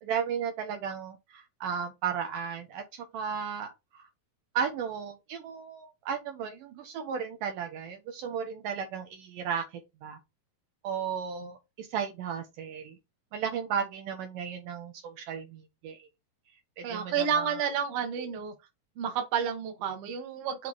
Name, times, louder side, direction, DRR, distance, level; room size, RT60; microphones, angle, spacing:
voice 1, 0.0-3.7 3.9-4.1 4.5-10.2 10.8-13.0 13.3-16.1 16.8-17.6, right 7 dB, 75° right, 2.2 m, -35 dB
voice 2, 16.8-18.5 19.0-20.7, right 7 dB, 55° right, 1.8 m, -30 dB
8.5 x 3.3 x 3.7 m
omnidirectional pair, 4.3 m